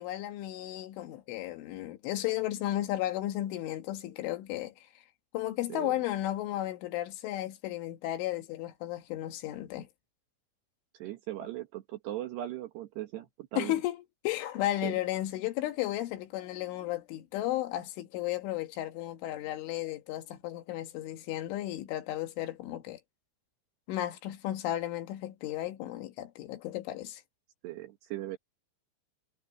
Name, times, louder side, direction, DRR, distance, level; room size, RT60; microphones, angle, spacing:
voice 1, 0.0-4.9 5.3-9.9 13.6-23.0 23.9-27.2, left 14 dB, 80° left, 4.0 m, -34 dB
voice 2, 11.0-13.8 14.8-14.9 27.6-28.4, right 14 dB, 70° right, 3.2 m, -38 dB
omnidirectional pair, 5.5 m